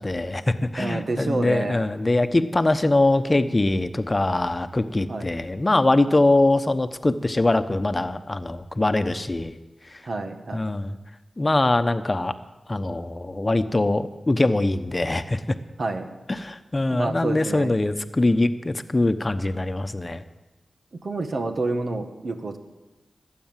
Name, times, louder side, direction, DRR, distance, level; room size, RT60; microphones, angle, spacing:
voice 1, 0.0-9.5 9.9-10.0 10.5-11.0 11.4-12.3 12.7-15.4 16.3-20.2, left 2 dB, 35° left, 10 dB, 1.0 m, -22 dB
voice 2, 0.8-1.9 5.1-5.3 10.0-10.7 15.8-16.1 16.9-17.7 21.0-22.6, right 3 dB, 65° right, 5 dB, 1.8 m, -28 dB
20.5 x 8.6 x 7.5 m, 1.1 s
cardioid pair, 45°, 0 cm